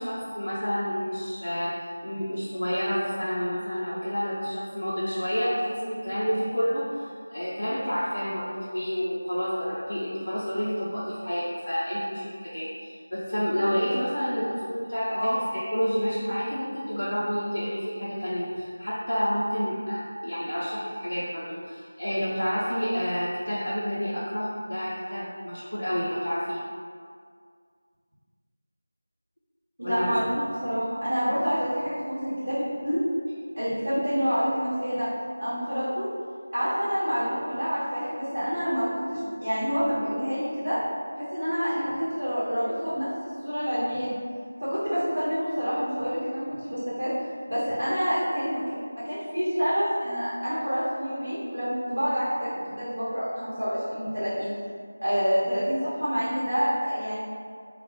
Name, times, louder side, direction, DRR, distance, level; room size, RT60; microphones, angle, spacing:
voice 1, 0.0-1.7 2.0-26.6 29.8-30.2, equal, 80° left, -8 dB, 0.4 m, -29 dB
voice 2, 29.8-33.0 33.6-35.1 35.4-36.1 36.5-40.8 41.2-44.2 44.6-47.1 47.5-48.6 49.0-54.5 55.0-57.2, equal, 85° right, -12 dB, 0.9 m, -27 dB
2.2 x 2.0 x 2.7 m, 2.1 s
figure-of-eight pair, 175°, 0 cm